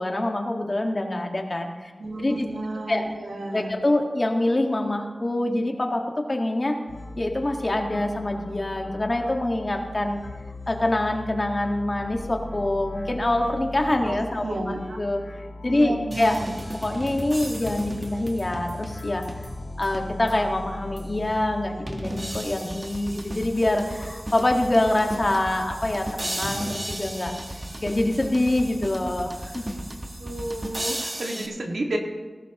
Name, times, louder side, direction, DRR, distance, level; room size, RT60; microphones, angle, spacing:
voice 1, 0.0-1.9 2.2-2.5 2.9-3.0 3.5-6.7 7.2-10.2 10.7-15.2 15.6-16.4 16.8-19.2 19.8-27.3 27.8-29.6, left 1 dB, 40° left, 2 dB, 1.7 m, -25 dB
voice 2, 2.0-3.7 14.1-15.0 15.7-16.5 30.2-32.0, right 1 dB, 80° right, 1 dB, 1.9 m, -31 dB
sound 1, 6.9-22.4, left 2 dB, 80° left, 1.4 m, -39 dB
sound 2, 16.1-20.5 21.0-21.1 21.9-31.5, right 1 dB, 30° right, 1.5 m, -35 dB
18.5 x 12.0 x 3.0 m, 1.4 s
wide cardioid pair, 55°, 0 cm